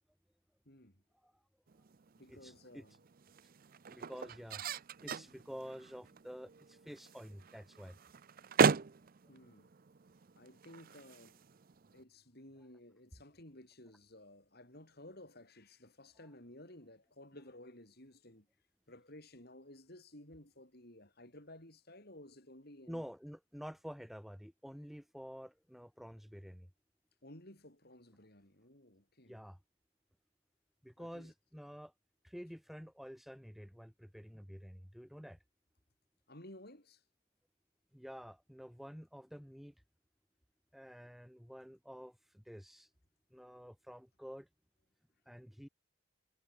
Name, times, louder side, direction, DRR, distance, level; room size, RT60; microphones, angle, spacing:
voice 1, 0.7-1.0 2.2-3.0 9.3-9.7 10.4-11.4 11.9-18.5 18.9-23.0 27.2-29.4 31.0-31.3 36.3-37.0, left 1 dB, 50° left, 7.3 m, -55 dB
sound 1, 1.7-12.0, right 5 dB, 45° right, 0.5 m, -38 dB
voice 2, 2.3-2.8 3.9-4.6 5.0-8.0 22.9-26.7 29.3-29.6 30.8-31.9 32.2-35.4 37.9-39.7 40.7-42.9 43.3-44.5 45.3-45.7, equal, ahead, 1.7 m, -49 dB
head